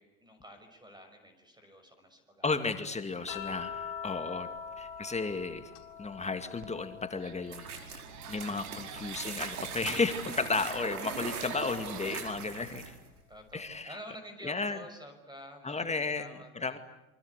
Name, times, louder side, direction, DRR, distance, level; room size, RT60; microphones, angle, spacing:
voice 1, 0.0-2.6 4.0-4.2 4.7-4.8 13.3-16.8, equal, 10° right, 7 dB, 6.0 m, -50 dB
voice 2, 2.4-4.5 4.8-5.7 6.0-8.0 8.3-12.9 13.5-14.0 14.4-14.8 15.6-16.8, left 4 dB, 15° left, 8 dB, 2.2 m, -34 dB
sound 1, 3.3-7.8 8.1-9.7 11.3-11.4, left 7 dB, 60° left, 4.1 m, -44 dB
sound 2, 6.6-6.7 7.1-12.4, right 12 dB, 40° right, 1.9 m, -49 dB
sound 3, 7.5-13.1, right 5 dB, 85° right, 5.0 m, -41 dB
28.5 x 24.5 x 8.2 m, 0.95 s
hypercardioid pair, 85°, 44 cm